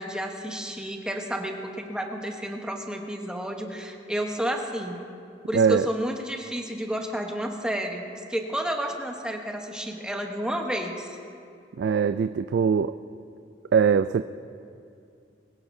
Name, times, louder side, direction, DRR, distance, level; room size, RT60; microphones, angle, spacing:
voice 1, 0.0-5.0 5.5-8.0 8.3-11.2, equal, 5° right, 2 dB, 1.1 m, -31 dB
voice 2, 5.5-5.9 11.8-12.9 13.7-14.2, right 6 dB, 65° right, 11 dB, 0.3 m, -21 dB
21.0 x 18.0 x 2.7 m, 2.5 s
head